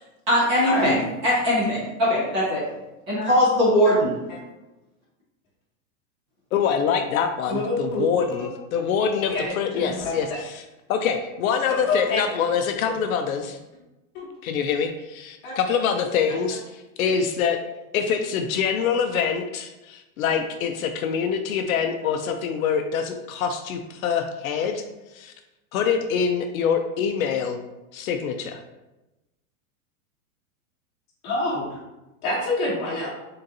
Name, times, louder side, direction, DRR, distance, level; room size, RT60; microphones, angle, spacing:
voice 1, 0.3-2.7 3.1-4.1, equal, 20° right, -7 dB, 0.6 m, -21 dB
voice 2, 6.5-10.6 10.9-13.6 14.4-17.6 17.9-24.8 25.1-25.3 25.7-27.6 27.9-28.6, left 7 dB, 70° left, 5 dB, 0.5 m, -25 dB
voice 3, 7.5-8.0 8.3-8.5 9.3-10.2 11.9-12.2 13.3-13.4 14.1-14.3 15.4-15.5 31.2-31.6 32.2-33.1, left 2 dB, 25° left, -5 dB, 1.1 m, -27 dB
3.9 x 3.7 x 2.7 m, 1.0 s
supercardioid pair, 175°, 44 cm